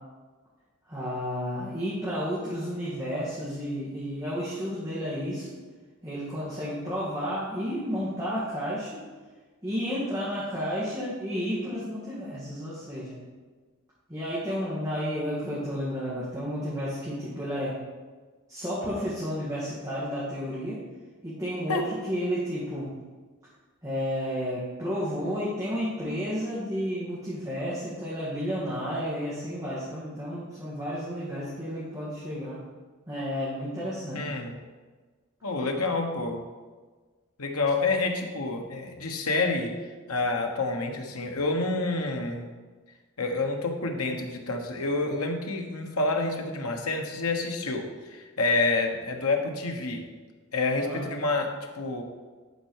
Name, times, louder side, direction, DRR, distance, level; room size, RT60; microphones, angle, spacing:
voice 1, 0.9-5.5 6.0-9.0 9.6-13.2 14.1-17.8 18.5-20.8 21.2-22.9 23.8-32.6 33.1-34.2 50.8-51.1, equal, 15° right, -9 dB, 1.8 m, -32 dB
voice 2, 34.1-34.5 35.4-36.4 37.4-39.7 40.1-42.5 43.2-50.1 50.5-52.0, left 3 dB, 90° left, 3 dB, 1.2 m, -28 dB
11.0 x 4.5 x 4.7 m, 1.4 s
head